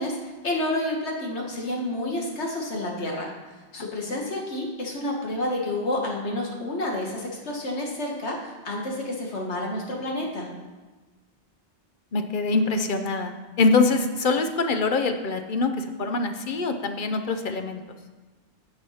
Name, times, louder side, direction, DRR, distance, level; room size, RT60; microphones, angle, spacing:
voice 1, 0.0-3.3 3.7-10.5, left 1 dB, 75° left, -1 dB, 1.9 m, -29 dB
voice 2, 12.1-13.3 13.6-17.8, left 3 dB, 50° left, 7 dB, 0.9 m, -24 dB
9.3 x 6.3 x 5.7 m, 1.2 s
omnidirectional pair, 1.2 m